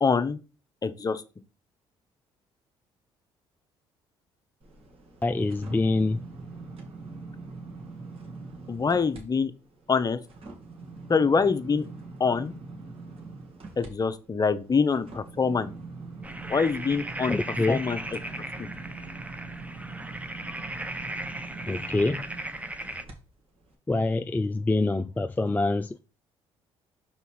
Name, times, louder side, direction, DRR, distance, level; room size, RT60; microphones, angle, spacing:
voice 1, 0.0-0.4 0.8-1.2 8.7-9.5 9.9-10.2 11.1-11.8 12.2-12.5 13.8-15.7 16.5-17.4 17.7-18.0 18.6-18.7, left 5 dB, 30° left, 0.8 m, -25 dB
sound 1, 4.6-9.2 9.6-23.1 23.6-23.8, right 3 dB, 50° right, 2.3 m, -43 dB
voice 2, 5.2-6.3 17.3-17.8 21.7-22.3 23.9-26.0, left 2 dB, 15° left, 0.4 m, -25 dB
sound 2, 16.2-23.0, right 1 dB, 10° right, 0.8 m, -37 dB
5.6 x 4.0 x 4.7 m
supercardioid pair, 60°, 12 cm